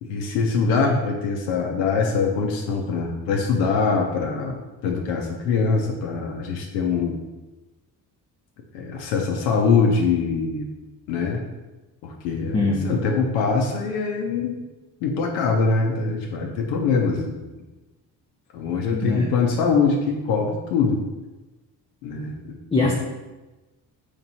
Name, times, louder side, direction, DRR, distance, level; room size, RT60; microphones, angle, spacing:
voice 1, 0.0-4.6 4.8-7.2 8.7-10.7 11.1-11.4 12.0-14.6 15.0-17.5 18.5-21.0 22.0-22.9, left 4 dB, 80° left, 0 dB, 0.6 m, -23 dB
voice 2, 12.5-13.0 18.9-19.3 22.7-22.9, left 2 dB, 15° left, -2 dB, 0.3 m, -22 dB
3.0 x 2.6 x 4.0 m, 1.1 s
hypercardioid pair, 50°, 49 cm